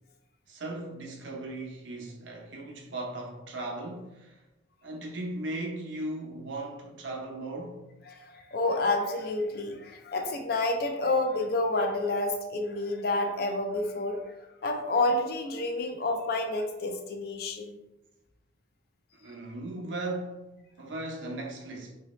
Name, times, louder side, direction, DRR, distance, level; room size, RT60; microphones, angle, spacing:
voice 1, 0.5-4.4 4.8-7.9 19.2-21.9, right 2 dB, 85° right, 0.8 m, -37 dB
voice 2, 8.1-14.2 14.6-17.8, left 2 dB, 55° left, 0.4 m, -29 dB
3.0 x 2.7 x 3.0 m
head